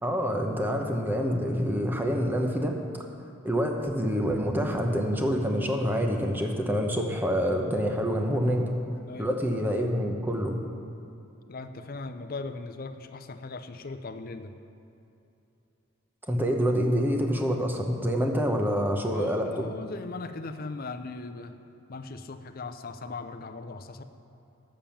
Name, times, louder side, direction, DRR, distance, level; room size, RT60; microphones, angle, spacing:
voice 1, 0.0-2.8 3.4-8.7 9.2-10.6 16.3-19.7, equal, 10° right, 2 dB, 0.8 m, -27 dB
voice 2, 11.5-14.5 19.1-21.5 21.9-24.0, left 3 dB, 45° left, 9 dB, 0.5 m, -39 dB
10.0 x 7.3 x 7.2 m, 2.8 s
head